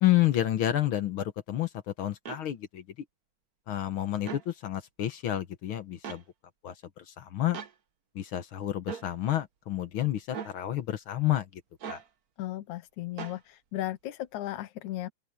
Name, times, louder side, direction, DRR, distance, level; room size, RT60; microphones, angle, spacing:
voice 1, 0.0-2.8 3.7-6.2 6.6-7.6 8.1-11.6 11.9-12.0, left 13 dB, 60° left, 1.5 m, -29 dB
grabby bow original, 2.3-2.4 4.2-4.5 6.0-6.2 7.5-7.7 8.9-9.1 10.3-10.6 11.8-12.1 13.2-13.4, right 7 dB, 70° right, 0.8 m, -39 dB
voice 2, 12.4-15.1, left 14 dB, 85° left, 2.4 m, -36 dB
open air
omnidirectional pair, 3.4 m